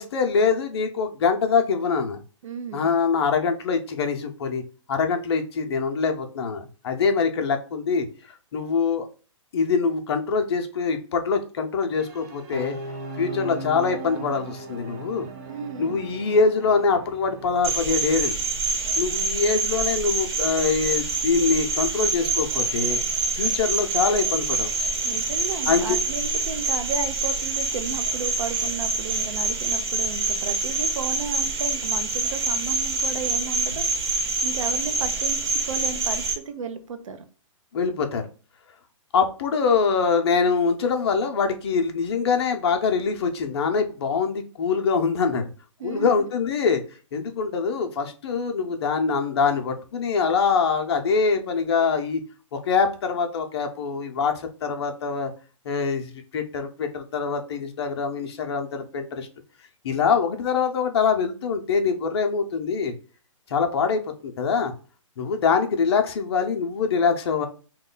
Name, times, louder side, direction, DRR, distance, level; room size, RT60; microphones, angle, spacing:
voice 1, 0.0-2.2 2.7-4.6 4.9-8.1 8.5-9.1 9.5-12.8 13.2-15.3 15.8-18.4 19.0-23.0 23.4-24.9 25.7-26.0 37.7-38.2 39.1-45.4 45.8-46.8 47.1-52.2 52.5-54.3 54.6-55.3 55.6-59.3 59.8-62.9 63.5-64.7 65.2-67.5, left 5 dB, 50° left, 5 dB, 0.6 m, -24 dB
voice 2, 2.4-2.9 15.5-16.0 25.0-34.1 34.4-37.2 45.8-46.1, right 6 dB, 70° right, 9 dB, 0.7 m, -34 dB
sound 1, 12.0-17.8, right 2 dB, 30° right, 0.6 m, -38 dB
Cricket, 17.6-36.3, right 3 dB, 50° right, 1.1 m, -26 dB
3.0 x 2.2 x 3.8 m, 0.37 s
hypercardioid pair, 155°, 17 cm